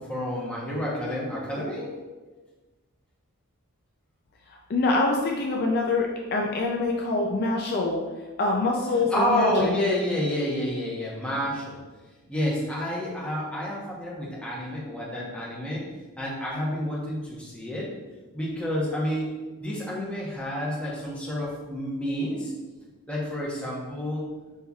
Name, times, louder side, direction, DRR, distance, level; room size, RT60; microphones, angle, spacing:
voice 1, 0.0-2.0 9.1-11.8 12.3-15.8 16.2-17.9 18.3-22.5 23.1-24.3, left 1 dB, 5° left, -5 dB, 0.8 m, -29 dB
voice 2, 4.5-8.0 8.4-9.7, left 3 dB, 45° left, 0 dB, 0.4 m, -25 dB
5.4 x 3.1 x 2.3 m, 1.3 s
head